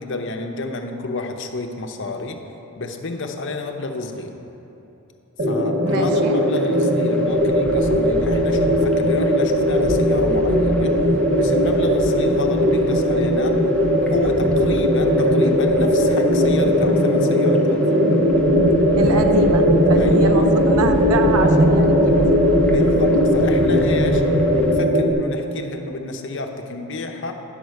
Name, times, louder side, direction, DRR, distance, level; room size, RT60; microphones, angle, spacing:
voice 1, 0.0-2.4 2.8-4.3 5.4-10.9 11.3-13.6 14.0-17.8 20.0-20.5 22.6-24.2 24.5-27.3, left 2 dB, 55° left, 4 dB, 0.7 m, -30 dB
sound 1, 5.4-25.1, equal, 45° right, 0.7 m, -18 dB
voice 2, 5.8-6.4 18.9-22.4, right 3 dB, 90° right, 6 dB, 0.7 m, -25 dB
sound 2, 5.9-24.7, equal, 5° left, 0.7 m, -32 dB
10.0 x 4.6 x 6.4 m, 3.0 s
head